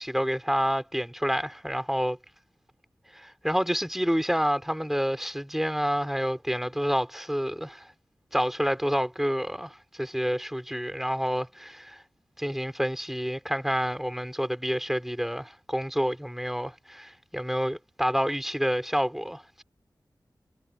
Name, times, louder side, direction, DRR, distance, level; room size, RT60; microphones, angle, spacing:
voice 1, 0.0-2.2 3.1-7.9 8.3-12.0 12.4-19.6, equal, 5° right, 4.3 m, -28 dB
wide cardioid pair, 90°, 8 cm